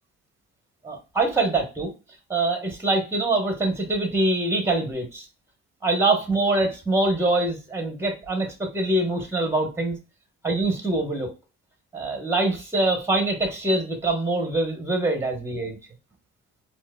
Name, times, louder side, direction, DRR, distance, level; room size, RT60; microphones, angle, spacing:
voice 1, 0.8-1.9 2.3-5.3 5.8-10.0 10.4-11.3 11.9-15.8, right 2 dB, 10° right, 4 dB, 1.0 m, -24 dB
4.5 x 2.1 x 2.3 m, 0.31 s
cardioid pair, 90°, 30 cm